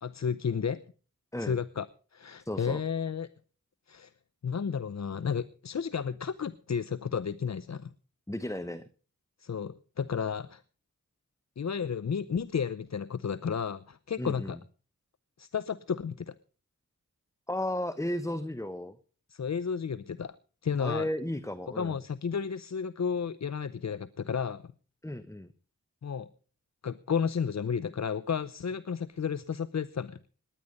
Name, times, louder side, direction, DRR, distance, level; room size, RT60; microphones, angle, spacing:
voice 1, 0.0-0.8 1.4-1.9 2.1-3.3 3.9-4.1 4.4-7.9 9.4-10.6 11.6-14.6 15.4-16.3 19.3-20.4 20.6-21.1 21.8-24.7 26.0-26.3 26.8-30.2, left 6 dB, 55° left, 17 dB, 0.7 m, -32 dB
voice 2, 2.5-2.8 8.3-8.8 14.2-14.6 17.5-19.0 20.8-22.0 25.0-25.5, left 1 dB, 10° left, 13 dB, 1.0 m, -34 dB
19.0 x 10.5 x 5.3 m, 0.39 s
cardioid pair, 40°, 32 cm